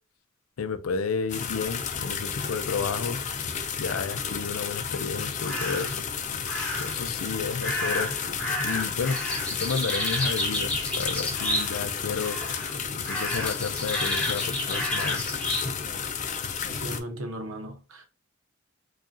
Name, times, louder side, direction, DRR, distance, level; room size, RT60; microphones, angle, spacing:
voice 1, 0.6-3.3 3.8-6.0 6.8-8.1 8.6-12.4 13.0-15.2, left 5 dB, 90° left, 0.5 m, -31 dB
sound 1, 1.3-17.0, left 6 dB, 35° left, 0.4 m, -32 dB
sound 2, 5.4-6.0 6.5-7.0 7.6-11.9 12.2-12.7 13.0-15.7, left 1 dB, 5° left, 0.9 m, -31 dB
voice 2, 16.7-18.1, right 1 dB, 90° right, 0.8 m, -37 dB
4.8 x 2.4 x 2.5 m
head